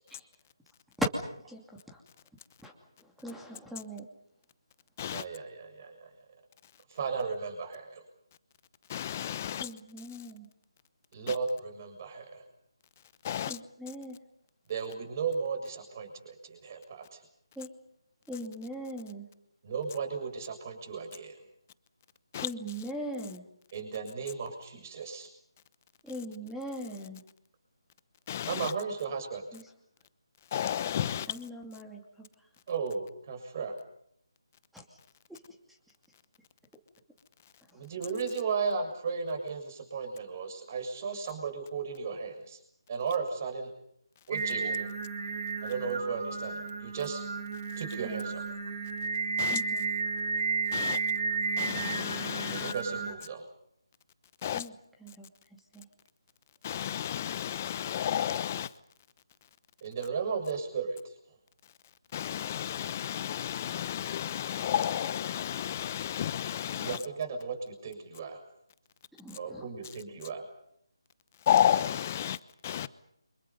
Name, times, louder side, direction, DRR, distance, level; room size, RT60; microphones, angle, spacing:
voice 1, 1.5-2.0 2.6-2.7 3.0-4.1 9.6-10.5 13.5-14.2 17.6-17.7 18.3-19.2 22.4-23.4 26.0-27.2 29.5-29.6 31.3-32.5 34.7-35.0 35.3-35.4 35.7-35.8 37.7-37.8 48.0-48.2 49.5-49.9 54.5-54.7 55.0-55.9 69.2-69.7, equal, ahead, 2.6 m, -40 dB
voice 2, 5.1-6.1 6.9-8.0 11.1-12.4 14.7-17.2 19.6-21.4 23.7-25.3 28.5-29.4 32.7-33.8 37.7-42.6 42.9-43.7 44.3-44.9 45.6-47.2 47.7-48.4 52.5-53.5 59.8-61.1 66.8-68.4 69.4-70.5, right 5 dB, 35° right, 6.7 m, -35 dB
voice 3, 8.9-9.7 11.3-11.4 13.2-13.6 22.3-22.5 28.3-28.7 30.5-31.3 49.4-49.6 50.7-51.0 51.6-52.7 54.4-54.7 56.6-58.7 62.1-67.0 71.5-72.4 72.6-72.9, left 10 dB, 30° left, 0.9 m, -31 dB
Singing, 44.3-53.1, right 4 dB, 60° right, 6.5 m, -33 dB
29.5 x 26.0 x 5.5 m
figure-of-eight pair, 160°, 3 cm